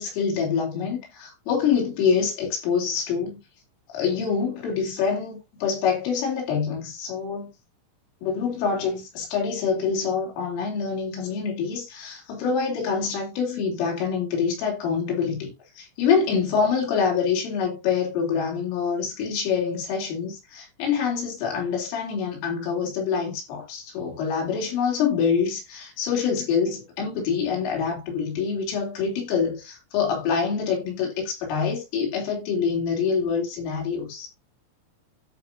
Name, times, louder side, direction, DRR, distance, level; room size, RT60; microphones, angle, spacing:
voice 1, 0.0-3.4 3.9-7.5 8.2-34.3, left 6 dB, 85° left, 6.3 m, -26 dB
13.5 x 5.4 x 2.7 m
omnidirectional pair, 5.6 m